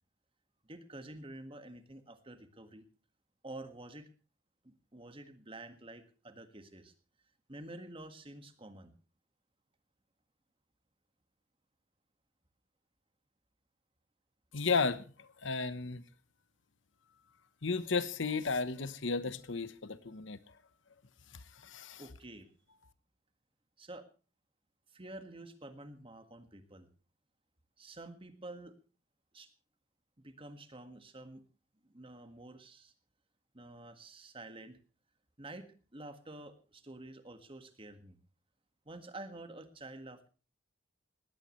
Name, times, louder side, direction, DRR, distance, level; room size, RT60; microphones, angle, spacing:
voice 1, 0.6-2.8 3.4-4.1 4.6-6.9 7.5-8.9 22.0-22.5 23.8-24.1 24.9-26.9 27.8-28.7 29.3-29.5 30.2-31.4 31.8-32.9 33.5-34.8 35.4-38.2 38.8-40.3, right 2 dB, 30° right, 1.7 m, -49 dB
voice 2, 14.5-16.0 17.6-20.4 21.6-22.0, left 4 dB, 70° left, 1.0 m, -34 dB
19.0 x 17.0 x 3.2 m
head